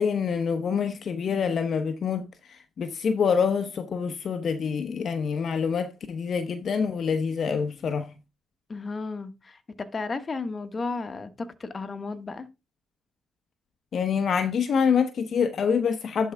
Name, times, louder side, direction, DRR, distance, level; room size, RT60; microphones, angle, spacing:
voice 1, 0.0-8.1 13.9-16.3, left 6 dB, 55° left, 0.9 m, -26 dB
voice 2, 8.7-12.5, left 3 dB, 35° left, 1.2 m, -34 dB
11.0 x 4.7 x 3.4 m
cardioid pair, 90°, 0 cm